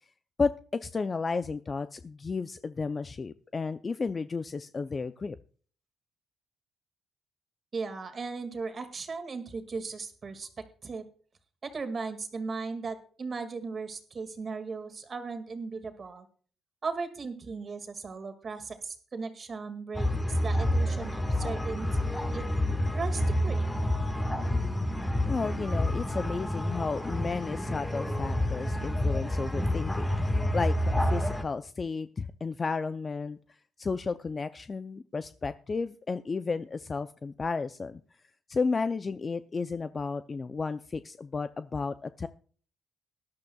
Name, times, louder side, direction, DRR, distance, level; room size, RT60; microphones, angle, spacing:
voice 1, 0.8-5.4 25.3-33.4 33.8-38.0 38.5-42.3, left 4 dB, 35° left, 11 dB, 0.5 m, -33 dB
voice 2, 7.7-11.1 11.6-16.3 16.8-22.4 22.9-23.8, right 4 dB, 40° right, 7 dB, 2.0 m, -37 dB
sound 1, 19.9-31.4, left 1 dB, 15° left, 1.6 m, -29 dB
18.5 x 11.5 x 2.3 m, 0.43 s
cardioid pair, 90°, 0 cm